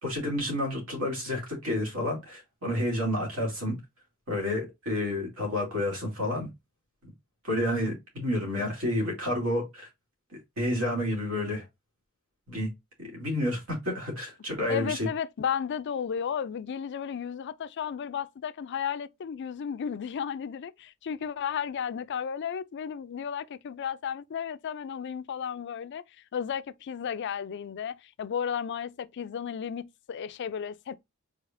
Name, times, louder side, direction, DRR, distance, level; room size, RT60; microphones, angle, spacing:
voice 1, 0.0-3.8 4.3-6.5 7.4-9.9 10.3-11.6 12.5-12.7 13.0-15.1, left 1 dB, 75° right, 2.8 m, -30 dB
voice 2, 14.7-26.0 26.3-31.0, left 7 dB, 55° left, 0.4 m, -33 dB
4.8 x 3.9 x 2.5 m
head